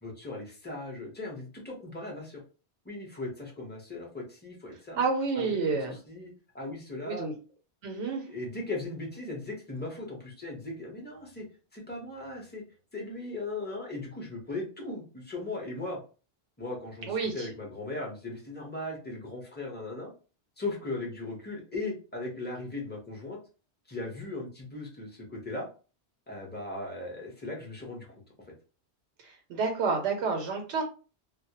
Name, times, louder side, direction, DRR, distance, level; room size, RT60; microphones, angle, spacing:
voice 1, 0.0-2.4 2.8-5.0 5.4-5.8 6.1-7.3 8.3-11.4 11.7-12.6 12.9-16.0 16.6-20.1 20.6-23.4 23.9-25.7 26.3-28.1, left 2 dB, 10° left, -1 dB, 0.6 m, -38 dB
voice 2, 5.0-5.9 7.0-7.3 7.8-8.3 17.1-17.5 29.2-30.8, right 4 dB, 85° right, 3 dB, 0.9 m, -29 dB
2.2 x 2.0 x 2.8 m, 0.35 s
omnidirectional pair, 1.2 m